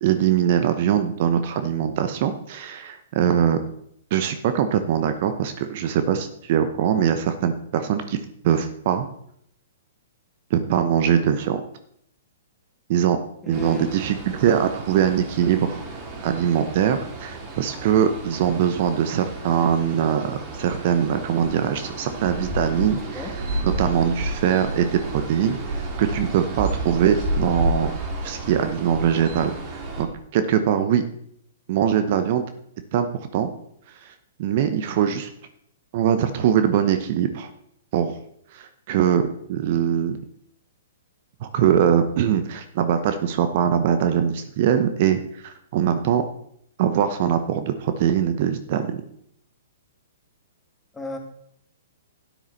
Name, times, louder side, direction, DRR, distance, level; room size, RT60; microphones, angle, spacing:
voice 1, 0.0-3.6 4.1-8.2 8.4-9.1 10.5-11.6 12.9-13.2 13.5-15.8 16.2-23.3 23.8-27.9 28.2-31.0 31.7-32.5 32.9-33.5 34.0-34.1 34.4-35.3 35.9-37.5 37.9-38.2 38.5-40.2 41.4-46.2 46.8-49.0, right 9 dB, 50° right, 9 dB, 0.9 m, -22 dB
voice 2, 13.4-13.9 22.7-23.3 50.9-51.2, left 1 dB, 10° left, 0 dB, 2.4 m, -35 dB
sound 1, 13.5-30.0, right 1 dB, 35° right, 2.5 m, -31 dB
12.5 x 9.3 x 4.1 m, 0.71 s
figure-of-eight pair, 120°, 0 cm